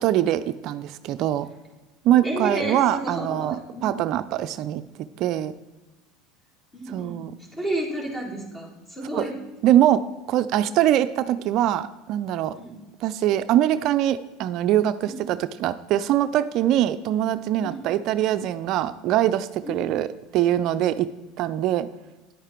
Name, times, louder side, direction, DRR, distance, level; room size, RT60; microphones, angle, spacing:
voice 1, 0.0-1.5 2.0-4.8 5.2-5.5 6.9-7.3 9.1-9.2 9.6-10.0 10.3-12.5 13.0-20.1 20.3-21.1 21.4-21.9, right 12 dB, 55° right, 12 dB, 0.4 m, -23 dB
voice 2, 2.2-4.0 6.7-9.4 12.5-12.8 15.1-15.2 17.6-17.8 19.6-19.8, right 1 dB, 20° left, -1 dB, 4.2 m, -32 dB
10.5 x 9.0 x 4.5 m, 1.1 s
hypercardioid pair, 90°, 0 cm